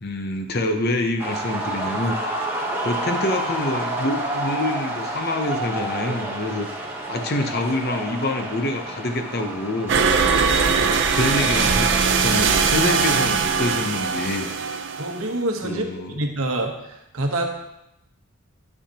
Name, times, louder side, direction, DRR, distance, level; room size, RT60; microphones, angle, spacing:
voice 1, 0.0-2.1 2.8-6.7 7.1-10.0 10.8-11.9 12.1-14.5 15.6-16.2, left 2 dB, 45° left, 4 dB, 0.8 m, -26 dB
sound 1, 1.2-13.2, right 1 dB, 10° right, 1.1 m, -30 dB
sound 2, 9.9-15.4, right 5 dB, 55° right, 0.5 m, -21 dB
voice 2, 15.0-15.9 16.2-16.7 17.1-17.5, right 2 dB, 75° right, 2 dB, 1.1 m, -26 dB
10.0 x 6.5 x 2.9 m, 0.87 s
head